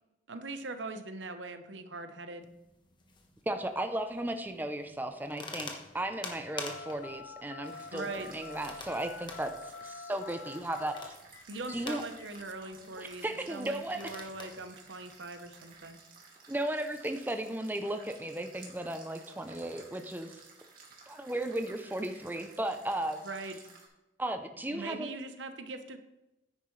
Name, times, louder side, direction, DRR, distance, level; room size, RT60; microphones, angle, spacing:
voice 1, 0.3-2.5 7.9-8.3 11.5-16.0 23.2-23.6 24.7-26.0, right 3 dB, 75° right, 8 dB, 0.9 m, -41 dB
sound 1, 2.4-16.0, left 3 dB, 25° left, 1.2 m, -49 dB
voice 2, 3.5-9.5 9.8-11.1 11.7-12.0 13.0-14.1 16.5-20.4 21.1-23.2 24.2-25.1, right 1 dB, 10° right, 7 dB, 0.6 m, -35 dB
Telephone, 6.5-13.4, left 4 dB, 90° left, 0.8 m, -47 dB
sound 2, 7.6-23.9, right 4 dB, 50° right, 2.3 m, -55 dB
9.9 x 9.2 x 3.2 m, 0.93 s
head